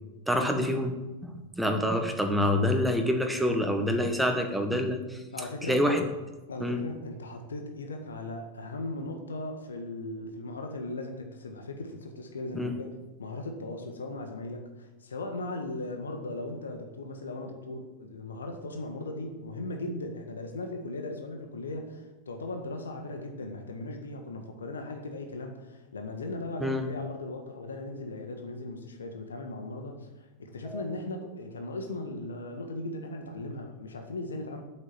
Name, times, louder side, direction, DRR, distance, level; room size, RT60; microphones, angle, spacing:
voice 1, 0.3-1.0 1.2-5.2 5.6-6.0 6.6-6.8 12.5-12.7 26.6-26.9 30.6-30.8, left 1 dB, 5° right, 5 dB, 1.5 m, -27 dB
voice 2, 5.3-5.8 6.5-12.9 13.2-34.6, left 2 dB, 70° left, 4 dB, 1.7 m, -38 dB
8.4 x 8.2 x 7.8 m, 1.1 s
figure-of-eight pair, 90°, 0 cm